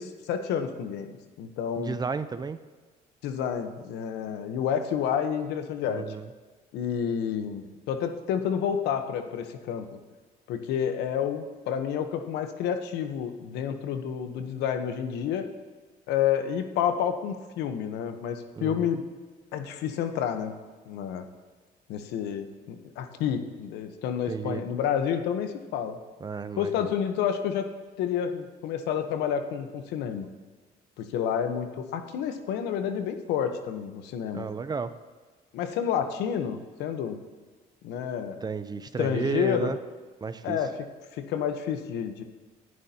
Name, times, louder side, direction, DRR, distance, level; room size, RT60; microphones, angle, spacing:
voice 1, 0.0-2.0 3.2-6.0 6.7-9.9 10.5-15.4 16.1-19.0 19.5-20.5 20.9-21.2 21.9-26.0 26.6-27.7 28.0-30.3 31.0-34.5 35.5-37.2 37.8-38.4 39.0-39.7 40.4-40.7 41.1-42.2, left 8 dB, 85° left, 8 dB, 1.0 m, -29 dB
voice 2, 1.8-2.6 5.9-6.3 18.6-18.9 24.3-24.6 26.2-26.9 34.3-34.9 38.4-39.8 40.2-40.6, right 5 dB, 25° right, 12 dB, 0.5 m, -32 dB
18.5 x 11.0 x 2.9 m, 1.4 s
cardioid pair, 110°, 17 cm